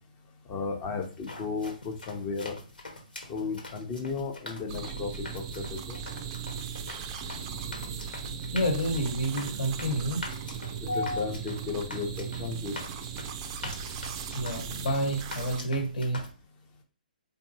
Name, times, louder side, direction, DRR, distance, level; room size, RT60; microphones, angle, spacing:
voice 1, 0.5-2.6 3.3-6.0 10.8-12.8, left 4 dB, 25° left, 4 dB, 0.9 m, -34 dB
sound 1, 1.0-16.3, left 2 dB, 75° left, 1.5 m, -44 dB
sound 2, 4.7-15.6, right 6 dB, 30° right, 0.5 m, -38 dB
voice 2, 8.5-10.2 10.8-11.3 14.3-16.2, equal, 55° left, 3 dB, 1.4 m, -29 dB
4.4 x 2.8 x 2.8 m, 0.37 s
figure-of-eight pair, 130°, 5 cm